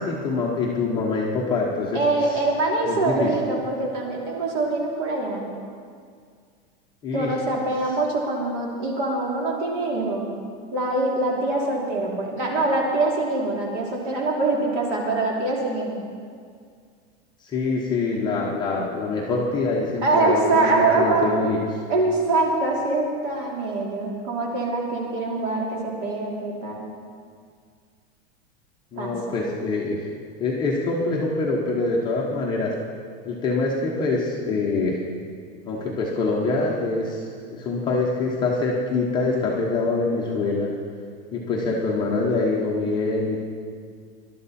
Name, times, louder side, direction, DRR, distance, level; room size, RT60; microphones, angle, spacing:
voice 1, 0.0-2.4 2.8-3.3 7.0-7.3 17.4-21.6 28.9-30.1 30.4-32.8 33.2-35.0 35.7-40.7 41.3-43.4, left 3 dB, 15° left, -4 dB, 0.9 m, -25 dB
voice 2, 1.9-5.4 7.1-10.3 10.7-16.0 18.3-18.4 20.0-21.3 21.9-26.8 29.0-29.4, right 2 dB, 50° right, -2 dB, 3.1 m, -24 dB
20.0 x 12.0 x 4.2 m, 2.1 s
supercardioid pair, 180°, 32 cm